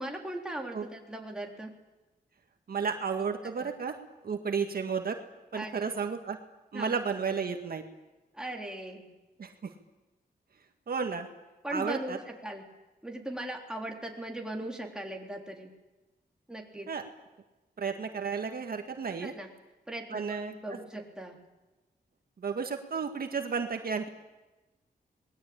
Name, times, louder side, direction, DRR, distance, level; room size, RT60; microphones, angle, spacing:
voice 1, 0.0-1.7 3.4-3.7 5.5-6.1 6.7-7.0 8.3-9.1 11.6-12.7 13.0-15.7 16.5-16.9 19.2-19.5 19.9-21.4, right 1 dB, 5° right, 0 dB, 3.7 m, -39 dB
voice 2, 2.7-3.9 4.2-5.2 5.5-6.4 6.7-7.8 9.4-9.7 10.9-11.3 11.7-12.2 16.9-17.0 17.8-19.3 20.1-20.6 22.4-24.1, right 5 dB, 65° right, 5 dB, 1.9 m, -32 dB
27.0 x 20.5 x 8.8 m, 1.1 s
wide cardioid pair, 145°, 17 cm